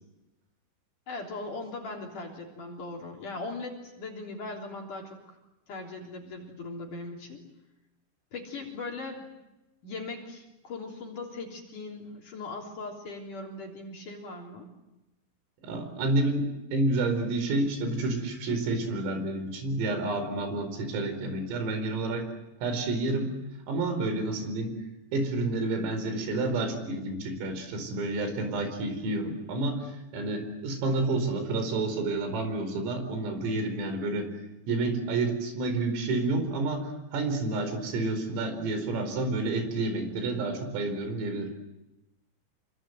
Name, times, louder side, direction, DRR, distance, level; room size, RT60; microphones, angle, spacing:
voice 1, 1.1-5.4 5.7-7.4 8.3-9.2 9.8-14.7, left 3 dB, 40° left, 0 dB, 4.4 m, -39 dB
voice 2, 15.6-22.3 22.6-23.3 23.7-24.8 25.1-34.3 34.7-41.5, right 2 dB, 75° right, 7 dB, 7.2 m, -29 dB
28.0 x 25.0 x 8.0 m, 0.98 s
omnidirectional pair, 6.0 m